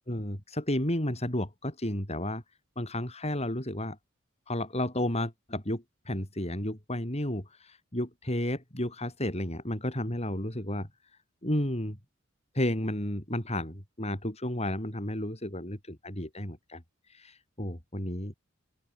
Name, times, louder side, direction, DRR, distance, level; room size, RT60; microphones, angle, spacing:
voice 1, 0.1-2.4 2.8-4.0 4.5-10.9 11.4-12.0 12.5-16.8 17.1-18.3, left 1 dB, 30° left, 7.2 m, -32 dB
open air
head